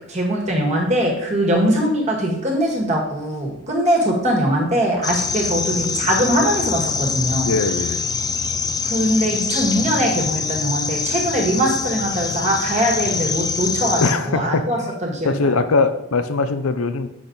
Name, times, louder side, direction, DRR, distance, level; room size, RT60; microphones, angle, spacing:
voice 1, 0.1-7.5 8.8-15.5, equal, 30° right, -1 dB, 1.9 m, -21 dB
sound 1, 5.0-14.1, left 5 dB, 15° left, 0.4 m, -24 dB
voice 2, 7.4-8.0 14.0-14.9 15.2-17.1, left 3 dB, 75° left, 11 dB, 0.6 m, -21 dB
8.3 x 6.2 x 3.9 m, 0.83 s
head